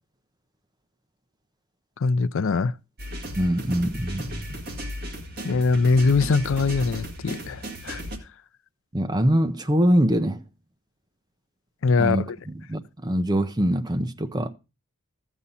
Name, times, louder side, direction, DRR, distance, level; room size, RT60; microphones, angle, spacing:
voice 1, 2.0-2.7 5.4-8.0 11.8-12.4, left 4 dB, 65° left, 0.5 m, -22 dB
sound 1, 3.0-8.2, equal, 45° right, 2.0 m, -35 dB
voice 2, 3.4-4.6 8.9-10.4 12.0-14.5, equal, 20° right, 0.7 m, -24 dB
14.0 x 7.2 x 4.1 m
head